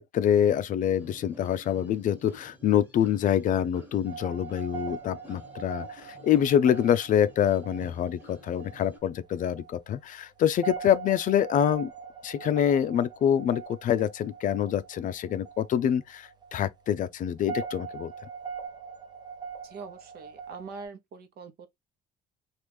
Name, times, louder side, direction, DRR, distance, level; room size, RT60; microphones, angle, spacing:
voice 1, 0.0-11.9 12.2-18.1, left 10 dB, 50° left, 0.4 m, -26 dB
sound 1, 1.0-9.0, equal, 10° right, 1.2 m, -52 dB
sound 2, 4.1-20.9, right 6 dB, 25° right, 0.8 m, -42 dB
voice 2, 19.6-21.7, right 4 dB, 65° right, 0.9 m, -43 dB
3.1 x 2.4 x 3.4 m
cardioid pair, 110°, 17 cm